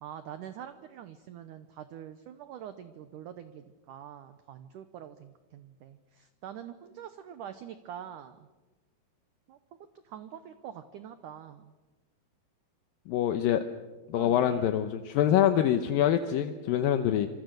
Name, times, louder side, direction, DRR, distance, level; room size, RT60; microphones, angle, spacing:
voice 1, 0.0-8.5 9.5-9.6 10.0-11.7 14.1-14.7, right 9 dB, 85° right, 11 dB, 1.8 m, -45 dB
voice 2, 13.1-13.6 14.1-17.3, left 10 dB, 75° left, 8 dB, 2.3 m, -25 dB
26.5 x 25.5 x 6.5 m, 1.2 s
omnidirectional pair, 4.9 m